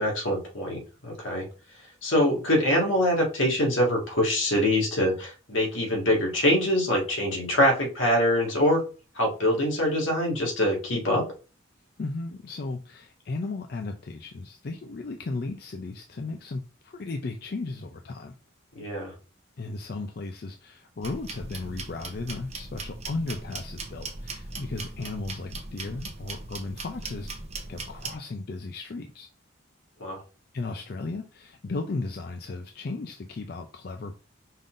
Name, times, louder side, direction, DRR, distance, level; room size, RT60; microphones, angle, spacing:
voice 1, 0.0-1.5 2.0-8.8 9.2-11.2 18.8-19.1 30.0-30.2, left 1 dB, 80° left, 0 dB, 1.8 m, -24 dB
voice 2, 12.0-18.3 19.6-27.3 27.7-29.3 30.5-34.2, left 3 dB, 50° left, 5 dB, 0.4 m, -35 dB
sound 1, 21.0-28.2, right 3 dB, 35° right, 0.7 m, -39 dB
5.4 x 3.7 x 2.5 m, 0.34 s
head